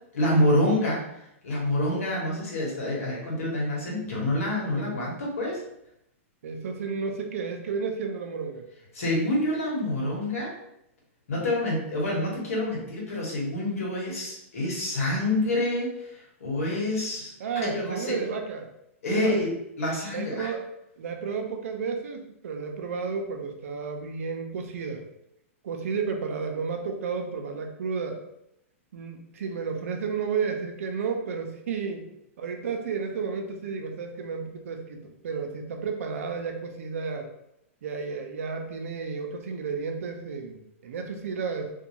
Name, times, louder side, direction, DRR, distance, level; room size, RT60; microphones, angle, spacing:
voice 1, 0.1-1.0 1.4-5.6 8.9-10.5 11.3-17.3 17.6-18.2 19.0-19.5 19.8-20.5, left 1 dB, 85° left, -3 dB, 1.2 m, -27 dB
voice 2, 6.4-8.6 17.4-18.7 19.1-19.4 20.1-20.7 21.0-25.0 25.6-28.2 28.9-32.0 32.4-37.3 37.8-41.7, right 5 dB, 75° right, 4 dB, 0.5 m, -32 dB
2.6 x 2.2 x 2.9 m, 0.81 s
hypercardioid pair, 145°, 8 cm